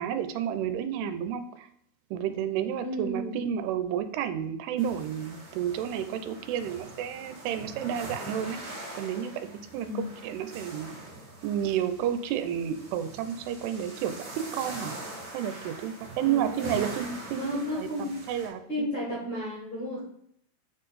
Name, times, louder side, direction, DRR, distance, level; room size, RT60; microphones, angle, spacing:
voice 1, 0.0-1.7 2.1-8.6 8.9-9.5 9.7-11.0 11.4-14.9 15.3-18.9, right 9 dB, 85° right, 10 dB, 2.6 m, -31 dB
voice 2, 2.8-3.4 9.7-10.1 16.2-16.8 17.3-18.1 18.7-20.0, left 1 dB, 45° left, -6 dB, 1.6 m, -33 dB
sound 1, 4.8-18.5, right 1 dB, 65° right, 1.1 m, -43 dB
6.8 x 3.8 x 4.1 m, 0.70 s
omnidirectional pair, 4.7 m